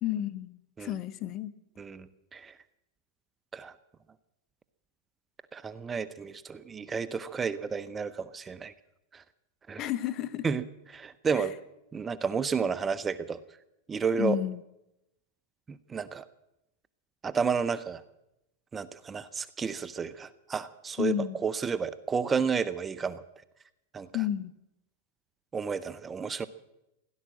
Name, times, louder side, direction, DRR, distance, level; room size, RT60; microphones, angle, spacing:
voice 1, 0.0-1.5 9.8-10.5 11.3-11.5 14.2-14.6 21.0-21.4 24.1-24.5, left 12 dB, 40° left, 1.0 m, -31 dB
voice 2, 1.8-2.6 3.5-3.7 5.5-8.7 9.1-9.2 9.7-9.9 10.4-10.6 10.9-11.5 11.9-13.4 13.9-14.4 15.7-16.2 17.2-18.0 18.7-21.1 21.4-23.2 23.9-24.1 25.5-26.5, right 6 dB, 20° right, 0.8 m, -31 dB
16.5 x 11.5 x 7.6 m
hypercardioid pair, 100°, 0 cm